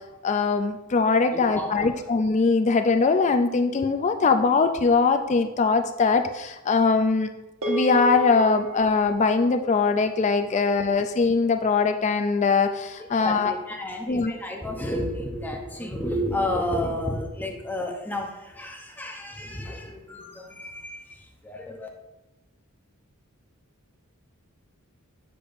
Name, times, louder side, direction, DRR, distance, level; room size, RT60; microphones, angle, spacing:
voice 1, 0.2-7.3 7.7-13.5 14.1-14.3, left 4 dB, 30° left, 8 dB, 0.3 m, -22 dB
voice 2, 1.3-2.1 10.5-10.6 13.0-21.9, left 1 dB, 10° left, 1 dB, 0.7 m, -31 dB
sound 1, 7.6-12.1, right 5 dB, 70° right, 1.3 m, -35 dB
8.2 x 6.8 x 2.6 m, 1.0 s
head